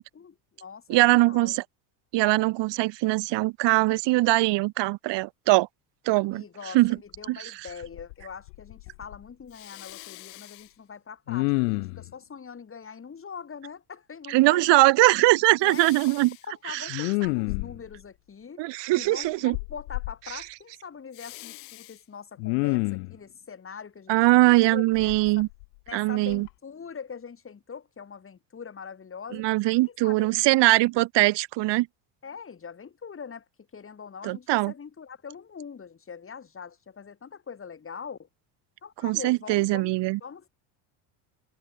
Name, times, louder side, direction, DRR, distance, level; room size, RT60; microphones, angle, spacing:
voice 1, 0.0-1.6 6.3-14.7 15.6-16.0 16.5-18.6 18.9-25.5 25.9-29.5 29.8-30.4 32.2-33.4 33.7-38.3 38.8-39.9 40.2-40.5, left 6 dB, 25° left, 4.9 m, -42 dB
voice 2, 0.9-1.6 2.1-5.7 6.1-6.4 6.7-7.0 7.3-7.5 14.3-16.3 16.7-16.9 18.6-19.5 24.1-25.5 25.9-26.5 29.3-31.9 34.2-34.7 39.0-40.2, right 20 dB, 60° right, 1.3 m, -21 dB
Respiratory sounds, 7.1-7.2 7.7-8.2 8.5-9.2 9.6-10.6 11.3-12.1 15.7-16.3 16.9-18.0 19.5-20.1 21.2-21.9 22.4-23.2 25.0-25.9 26.3-26.5, left 31 dB, 85° left, 1.5 m, -30 dB
supercardioid pair, 110°, 48 cm